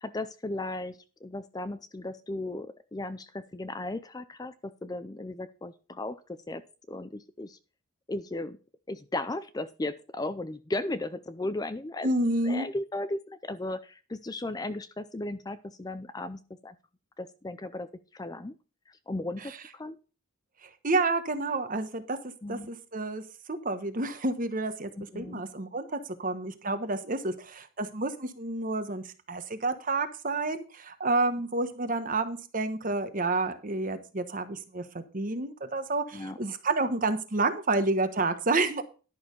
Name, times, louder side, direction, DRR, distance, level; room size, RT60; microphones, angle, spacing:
voice 1, 0.0-6.2 6.5-6.6 6.9-7.6 8.1-8.6 8.9-12.1 12.4-16.8 17.2-18.6 18.9-20.0 22.4-22.7 25.0-25.4 36.1-36.4, left 2 dB, 20° left, 13 dB, 0.5 m, -36 dB
voice 2, 12.0-12.7 20.8-22.2 22.5-23.2 23.6-24.9 25.1-38.8, right 2 dB, 40° right, 10 dB, 1.2 m, -29 dB
11.0 x 6.4 x 5.3 m, 0.35 s
head